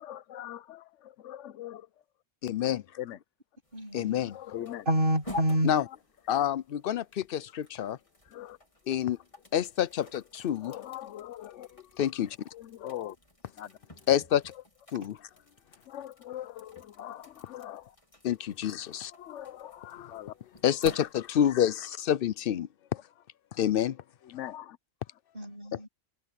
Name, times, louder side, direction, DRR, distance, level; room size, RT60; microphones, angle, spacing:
voice 1, 0.0-1.9 3.0-3.2 4.3-4.8 8.3-8.6 10.6-11.7 12.5-13.2 13.6-13.7 15.9-17.9 19.1-20.3 24.3-24.8, left 12 dB, 85° left, 1.0 m, -41 dB
voice 2, 2.4-2.8 3.9-4.4 5.6-5.8 6.3-8.0 8.9-9.2 9.5-10.8 12.0-12.4 14.1-14.4 14.9-15.2 18.2-19.1 20.6-22.7 23.5-24.0, left 10 dB, 60° left, 0.7 m, -27 dB
sound 1, 3.6-21.7, left 2 dB, 25° left, 3.1 m, -49 dB
voice 3, 3.7-4.3 4.8-5.7 15.0-15.1 25.3-25.9, right 1 dB, 45° right, 8.1 m, -28 dB
omnidirectional pair, 1.2 m